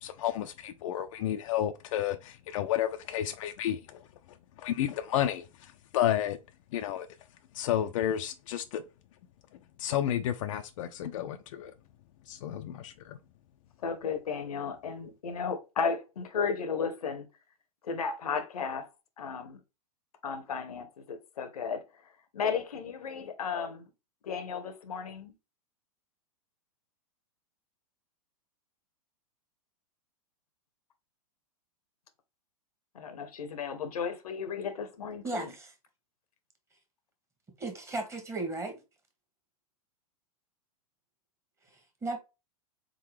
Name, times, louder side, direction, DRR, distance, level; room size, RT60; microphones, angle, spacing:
voice 1, 0.0-4.1 4.6-6.4 6.7-7.1 7.5-8.8 9.8-11.7 12.3-13.2, left 11 dB, 60° left, 0.5 m, -31 dB
voice 2, 13.8-17.3 17.9-18.8 19.2-19.6 20.2-21.8 22.3-23.8 24.3-25.3 33.0-35.5, left 6 dB, 80° left, 0.9 m, -34 dB
voice 3, 35.2-35.7 37.6-38.8 42.0-42.2, right 2 dB, 15° right, 1.3 m, -35 dB
3.9 x 3.8 x 3.2 m
hypercardioid pair, 115°, 19 cm